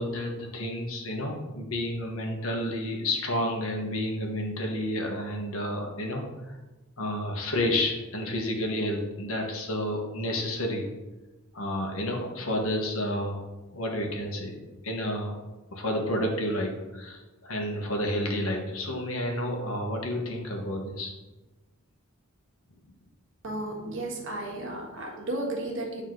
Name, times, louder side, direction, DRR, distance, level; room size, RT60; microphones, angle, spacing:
voice 1, 0.0-6.5 7.0-10.9 11.5-13.4 13.7-14.6 14.8-15.3 15.7-21.1, left 1 dB, 75° left, 1 dB, 1.4 m, -30 dB
voice 2, 23.4-26.0, right 1 dB, 65° right, -1 dB, 1.6 m, -33 dB
9.4 x 4.1 x 3.9 m, 1.1 s
head